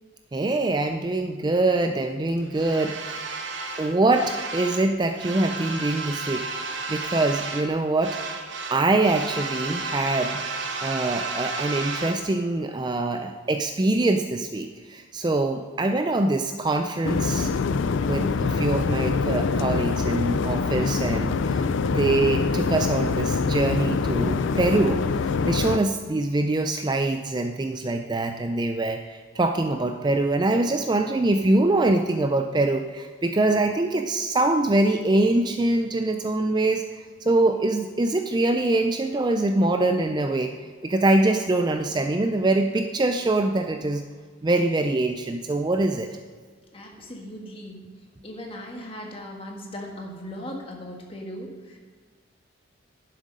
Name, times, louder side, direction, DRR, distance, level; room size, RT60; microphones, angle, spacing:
voice 1, 0.3-3.2 3.8-6.4 6.9-8.2 8.7-10.4 10.8-17.5 18.0-25.0 25.4-40.5 40.8-44.0 44.4-46.1, right 2 dB, 20° right, 6 dB, 0.4 m, -24 dB
sound 1, 2.5-4.9 5.1-7.7 8.0-12.2, right 3 dB, 65° right, 1.0 m, -32 dB
sound 2, 17.0-25.8, left 4 dB, 70° left, 0.4 m, -24 dB
voice 2, 46.7-47.9 48.2-51.8, equal, 25° left, 1 dB, 1.5 m, -38 dB
11.0 x 7.5 x 5.2 m, 1.5 s
head